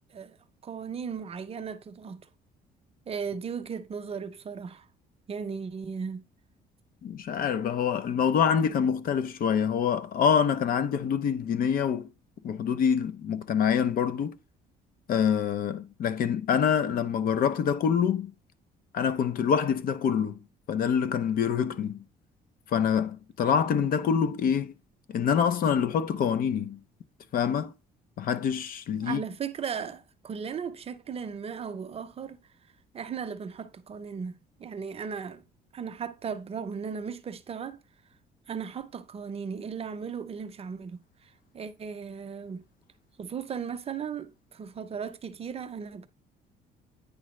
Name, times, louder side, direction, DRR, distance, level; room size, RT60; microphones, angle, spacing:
voice 1, 0.6-2.3 3.1-4.9 5.3-6.2 29.0-32.4 32.9-35.4 35.7-37.8 38.5-42.6 43.2-46.1, right 6 dB, 35° right, 0.7 m, -36 dB
voice 2, 7.0-12.1 12.4-14.4 15.1-18.3 18.9-20.4 20.7-22.0 22.7-24.7 25.1-26.8 27.3-27.7 28.2-29.2, left 7 dB, 55° left, 0.7 m, -26 dB
9.5 x 3.7 x 3.2 m
cardioid pair, 110°, 17 cm